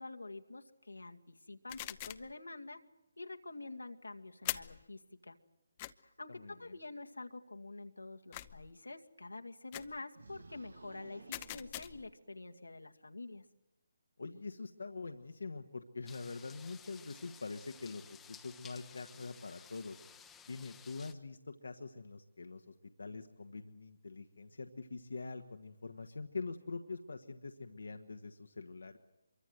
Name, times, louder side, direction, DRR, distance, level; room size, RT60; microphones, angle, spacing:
voice 1, 0.0-2.8 3.2-5.4 6.0-13.4, left 2 dB, 90° left, 4 dB, 2.1 m, -47 dB
sound 1, 1.7-2.3 4.4-4.8 5.8-5.9 8.3-8.7 9.7-10.0 11.3-12.1, left 16 dB, 25° left, 0.8 m, -42 dB
voice 2, 6.3-6.8 14.2-20.0 20.5-29.0, left 4 dB, 70° left, 6 dB, 1.5 m, -44 dB
sound 2, 10.1-12.6, right 3 dB, 70° right, 1.9 m, -56 dB
sound 3, 16.1-21.1, left 7 dB, 10° left, 1.2 m, -56 dB
25.0 x 23.5 x 8.0 m, 0.96 s
figure-of-eight pair, 150°, 0 cm